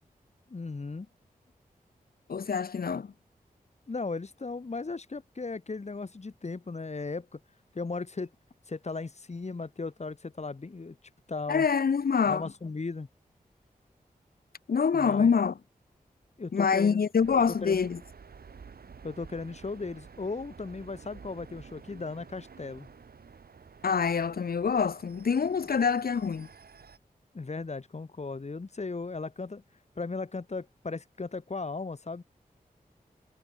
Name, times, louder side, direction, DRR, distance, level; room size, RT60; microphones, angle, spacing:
voice 1, 0.5-1.1 3.9-7.4 7.7-8.3 8.7-11.0 11.3-11.7 12.3-13.1 14.9-15.3 16.4-17.0 17.6-17.9 19.0-22.9 27.3-29.6 30.0-32.2, left 3 dB, 45° left, 2.1 m, -36 dB
voice 2, 2.3-3.1 11.5-12.4 14.7-15.5 16.5-18.0 23.8-26.5, left 6 dB, 80° left, 1.5 m, -25 dB
sound 1, 17.2-27.0, right 6 dB, 80° right, 3.0 m, -51 dB
cardioid pair, 50°, 16 cm